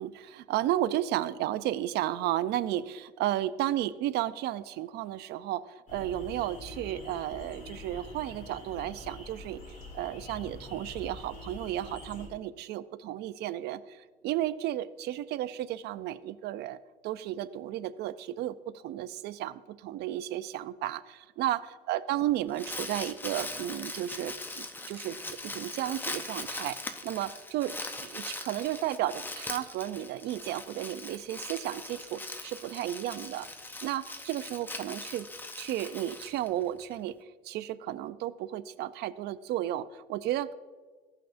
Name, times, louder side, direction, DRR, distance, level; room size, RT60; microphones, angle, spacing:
voice 1, 0.0-9.6 9.9-25.2 25.4-27.7 28.0-33.5 33.8-35.3 35.6-37.2 37.4-40.5, right 13 dB, 75° right, 15 dB, 0.4 m, -33 dB
sound 1, 5.9-12.3, left 2 dB, 50° left, 2.5 m, -45 dB
Crumpling crinkling, 22.3-36.9, left 2 dB, 10° left, 0.6 m, -41 dB
15.5 x 5.7 x 2.6 m, 1.4 s
cardioid pair, 110°, 17 cm